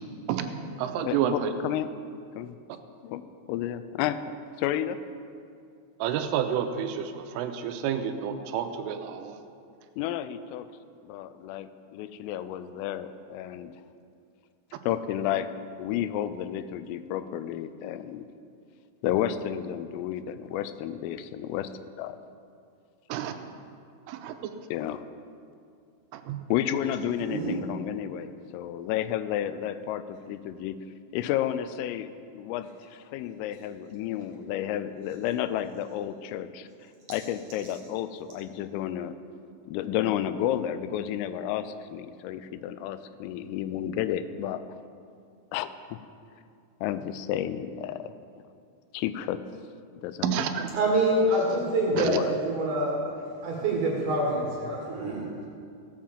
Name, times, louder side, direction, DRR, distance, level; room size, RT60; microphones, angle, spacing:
voice 1, 0.3-1.5 6.0-9.4 23.1-23.3 24.1-24.3 26.1-26.5 50.2-50.7 52.0-52.1, right 9 dB, 90° right, 7 dB, 3.3 m, -30 dB
voice 2, 1.0-1.9 2.4-2.6 3.0-5.0 10.0-10.7 11.0-13.7 14.9-15.5 15.8-18.3 19.0-21.7 22.0-22.2 24.7-25.0 26.5-30.8 31.1-36.7 37.1-39.1 39.7-44.6 45.5-46.0 46.8-48.1 48.9-49.4 50.0-50.4 51.9-52.3, left 11 dB, 90° left, 12 dB, 3.3 m, -31 dB
voice 3, 26.8-27.6 37.1-37.2 50.7-53.1 53.4-55.5, right 1 dB, 60° right, -2 dB, 2.2 m, -26 dB
16.0 x 7.6 x 7.3 m, 2.4 s
omnidirectional pair, 5.7 m